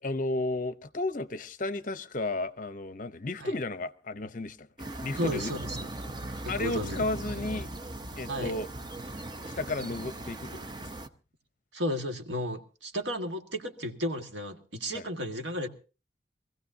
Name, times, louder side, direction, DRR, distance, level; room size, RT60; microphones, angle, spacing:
voice 1, 0.0-4.7 5.0-5.5 6.5-7.7 8.2-8.7 9.6-11.0 14.9-15.0, left 2 dB, 45° left, 0.8 m, -33 dB
sound 1, 4.8-11.1, right 2 dB, 25° right, 0.8 m, -39 dB
voice 2, 5.2-5.9 6.4-7.1 8.3-8.5 11.7-15.7, equal, 85° right, 1.8 m, -33 dB
23.5 x 16.0 x 2.7 m
head